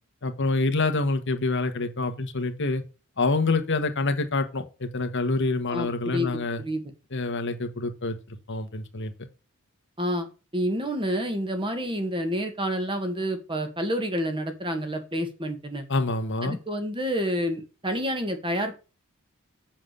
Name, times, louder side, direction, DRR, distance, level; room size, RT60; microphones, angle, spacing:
voice 1, 0.2-2.8 3.2-6.6 7.1-9.1 15.9-16.6, left 3 dB, 60° left, 1.4 m, -26 dB
voice 2, 5.7-6.8 10.0-10.3 10.5-15.9 16.4-18.7, equal, 25° right, 1.9 m, -29 dB
7.5 x 7.2 x 6.8 m
head